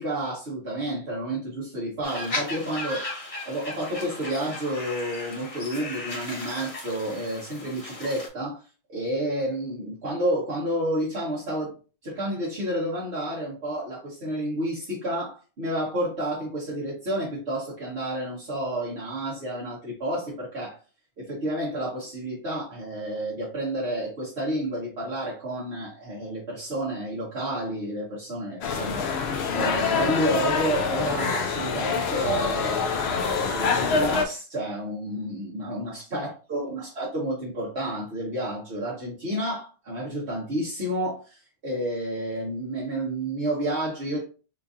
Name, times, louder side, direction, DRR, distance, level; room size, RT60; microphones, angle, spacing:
voice 1, 0.0-3.1 3.4-8.6 8.9-11.7 12.0-20.8 21.2-32.8 33.2-44.3, right 1 dB, 65° right, 1.4 m, -30 dB
sound 1, 2.0-8.3, left 2 dB, 30° left, 1.0 m, -36 dB
sound 2, 28.6-34.2, left 5 dB, 65° left, 0.8 m, -25 dB
4.4 x 2.6 x 2.5 m
omnidirectional pair, 1.2 m